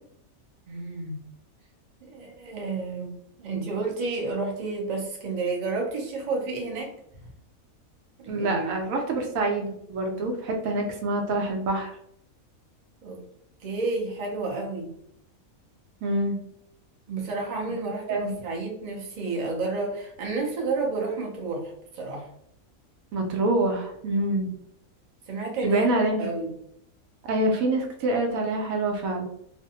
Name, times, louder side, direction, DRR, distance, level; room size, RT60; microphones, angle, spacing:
voice 1, 0.7-1.2 2.0-3.1 3.4-6.9 8.2-8.7 13.0-13.2 13.6-14.9 17.1-22.3 25.3-25.9 26.2-26.5, right 3 dB, 50° right, -1 dB, 0.5 m, -31 dB
voice 2, 8.3-12.0 16.0-16.4 18.1-18.3 23.1-24.5 25.6-26.3 27.2-29.3, right 2 dB, 75° right, 2 dB, 1.0 m, -26 dB
2.6 x 2.1 x 2.7 m, 0.73 s
omnidirectional pair, 1.5 m